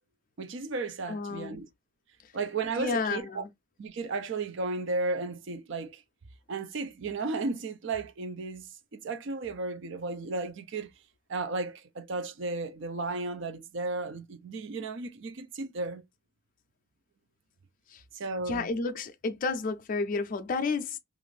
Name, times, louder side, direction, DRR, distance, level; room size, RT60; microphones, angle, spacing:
voice 1, 0.4-1.7 2.3-3.4 3.8-6.0 6.5-10.9 11.3-16.0 18.1-18.7, right 3 dB, 65° right, 0.5 m, -34 dB
voice 2, 1.1-1.6 2.8-3.5 17.9-18.0 18.5-21.0, left 4 dB, 45° left, 0.4 m, -31 dB
2.5 x 2.5 x 3.1 m
head